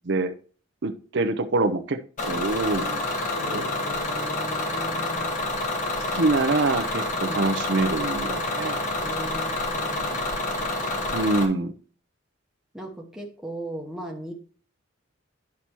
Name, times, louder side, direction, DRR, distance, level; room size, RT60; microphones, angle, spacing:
voice 1, 0.8-3.0 3.3-3.6 6.1-8.8 11.1-11.7, right 2 dB, 55° right, 8 dB, 0.7 m, -25 dB
Bus / Engine, 2.2-11.5, left 2 dB, 40° left, 1.3 m, -28 dB
voice 2, 3.4-5.4 7.1-7.4 9.0-11.0 12.7-14.3, equal, ahead, -1 dB, 0.9 m, -38 dB
9.7 x 5.8 x 2.9 m, 0.41 s
head